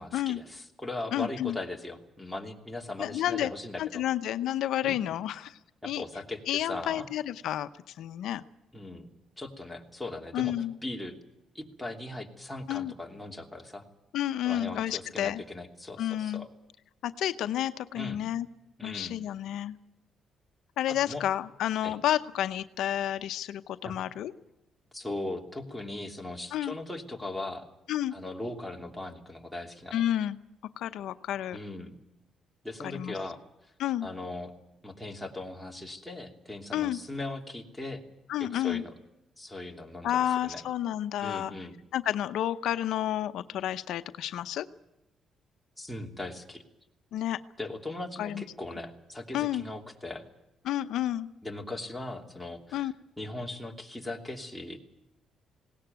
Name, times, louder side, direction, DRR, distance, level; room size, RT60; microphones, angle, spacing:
voice 1, 0.0-4.0 4.8-5.0 5.8-7.1 8.7-9.1 9.4-10.6 10.8-11.2 11.5-13.8 14.4-16.5 17.9-18.2 18.8-19.2 20.9-21.2 21.8-21.9 23.8-24.1 24.9-27.7 28.1-30.0 31.5-31.9 32.6-33.4 34.0-34.5 34.8-38.0 38.4-38.9 39.4-40.1 40.4-40.6 41.2-41.7 45.8-46.6 47.6-50.2 51.4-54.8, left 2 dB, 5° left, 1 dB, 3.0 m, -39 dB
voice 2, 1.1-1.6 3.0-3.5 3.8-6.0 6.5-7.7 8.0-8.4 10.3-10.7 12.7-12.9 14.1-15.4 16.0-16.5 17.0-18.5 18.8-19.8 20.8-24.3 26.5-26.8 27.9-28.1 29.9-30.4 30.8-31.6 32.8-33.1 33.8-34.1 36.7-37.0 38.3-38.8 40.0-41.5 41.9-44.7 47.1-47.4 48.2-48.4 49.3-49.6 50.6-51.3 52.7-52.9, left 12 dB, 80° left, 11 dB, 0.7 m, -30 dB
20.0 x 18.0 x 9.3 m, 0.92 s
cardioid pair, 90°, 0 cm